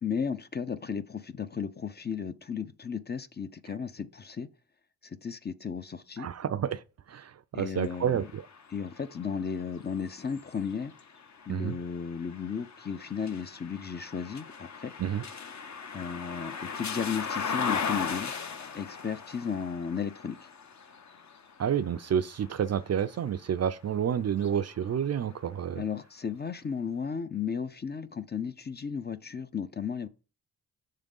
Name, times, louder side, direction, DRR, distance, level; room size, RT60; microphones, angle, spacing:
voice 1, 0.0-4.5 5.0-6.3 7.5-8.2 8.7-10.9 11.5-14.9 15.9-18.3 18.7-20.5 25.7-30.1, left 6 dB, 25° left, 0.5 m, -34 dB
voice 2, 6.2-6.8 7.1-8.5 11.5-11.8 15.0-15.2 21.6-25.8, right 8 dB, 45° right, 0.4 m, -29 dB
sound 1, 7.8-23.7 24.3-25.5, left 6 dB, 45° left, 0.9 m, -39 dB
6.4 x 3.7 x 5.3 m
cardioid pair, 75°, 38 cm